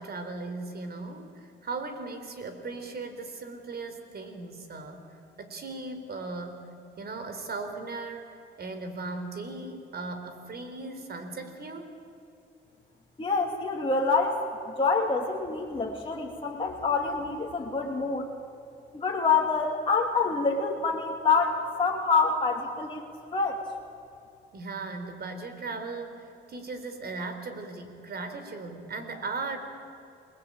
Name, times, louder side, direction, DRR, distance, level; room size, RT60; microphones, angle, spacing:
voice 1, 0.0-5.1 5.4-6.7 7.0-8.3 8.6-11.9 24.5-29.6, right 3 dB, 50° right, 7 dB, 4.2 m, -37 dB
voice 2, 13.2-14.4 14.8-18.3 18.9-23.0 23.3-23.6, left 4 dB, 25° left, -2 dB, 2.7 m, -26 dB
29.0 x 21.0 x 8.9 m, 2.8 s
cardioid pair, 90°, 20 cm